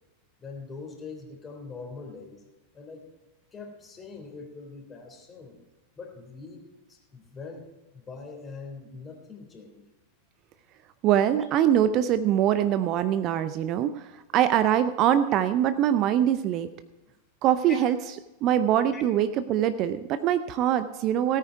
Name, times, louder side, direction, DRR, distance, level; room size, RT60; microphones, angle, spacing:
voice 1, 0.4-2.4 2.7-3.1 3.5-5.6 6.0-6.6 6.9-7.7 7.9-9.8 18.9-19.0, left 4 dB, 20° left, 2 dB, 3.4 m, -42 dB
voice 2, 11.0-16.7 17.4-18.0 18.4-21.4, right 10 dB, 35° right, 12 dB, 0.6 m, -23 dB
17.5 x 9.3 x 4.6 m, 1.1 s
figure-of-eight pair, 90°, 0 cm